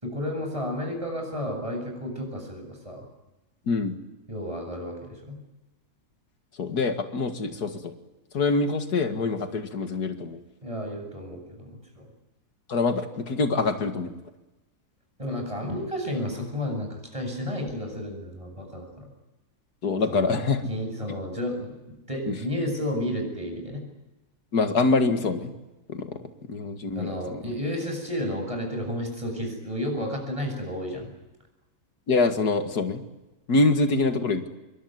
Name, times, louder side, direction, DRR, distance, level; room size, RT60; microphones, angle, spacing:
voice 1, 0.0-3.0 4.3-5.4 10.6-12.1 15.2-19.0 20.1-20.4 20.7-23.8 26.9-31.1, equal, 20° right, 3 dB, 8.2 m, -32 dB
voice 2, 6.6-7.9 8.3-10.4 12.7-14.2 19.8-20.6 22.3-22.4 24.5-25.5 25.9-26.2 26.5-27.4 32.1-33.0 33.5-34.5, left 3 dB, 85° left, 8 dB, 2.5 m, -25 dB
26.5 x 23.0 x 9.5 m, 1.0 s
omnidirectional pair, 1.7 m